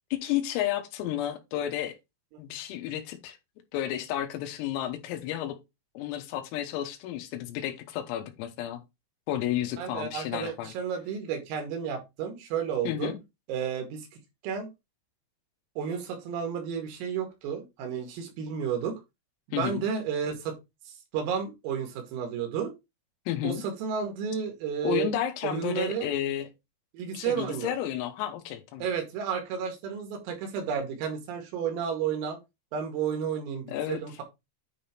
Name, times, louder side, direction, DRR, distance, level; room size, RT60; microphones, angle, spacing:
voice 1, 0.1-2.0 2.4-3.4 3.7-5.6 6.0-8.8 9.3-10.7 12.9-13.2 19.5-19.8 23.3-23.6 24.8-26.5 27.1-28.8 33.7-34.0, left 12 dB, 85° left, 3.9 m, -32 dB
voice 2, 9.8-13.1 13.5-14.1 14.4-14.7 15.8-19.0 19.6-20.6 20.9-22.7 23.4-25.1 25.4-26.1 26.9-27.7 28.8-32.4 32.7-34.2, right 7 dB, 80° right, 4.6 m, -32 dB
9.9 x 3.5 x 4.4 m
omnidirectional pair, 6.0 m